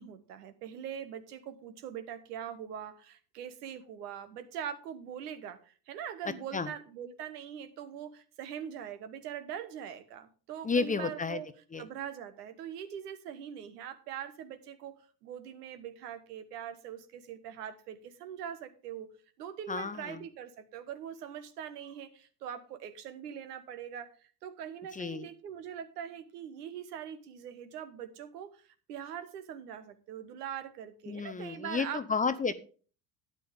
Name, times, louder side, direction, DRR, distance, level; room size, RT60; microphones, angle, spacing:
voice 1, 0.0-11.5 11.8-19.1 19.4-24.1 24.4-32.0, right 9 dB, 70° right, 11 dB, 1.3 m, -42 dB
voice 2, 10.6-11.4 11.7-11.9 19.7-20.2 24.9-25.3 31.1-32.5, left 4 dB, 15° left, 13 dB, 0.7 m, -32 dB
12.5 x 9.3 x 3.5 m, 0.38 s
figure-of-eight pair, 65°, 49 cm